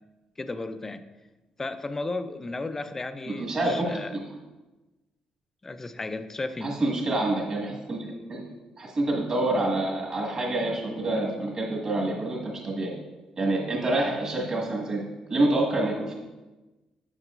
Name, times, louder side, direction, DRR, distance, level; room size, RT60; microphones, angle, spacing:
voice 1, 0.4-1.1 1.6-4.1 5.6-6.8, left 2 dB, 20° left, 11 dB, 0.4 m, -34 dB
voice 2, 3.3-3.9 6.6-8.4 8.8-12.9 13.4-15.0 15.3-16.1, right 2 dB, 35° right, -2 dB, 1.6 m, -27 dB
7.7 x 6.4 x 2.5 m, 1.1 s
cardioid pair, 130°, 2 cm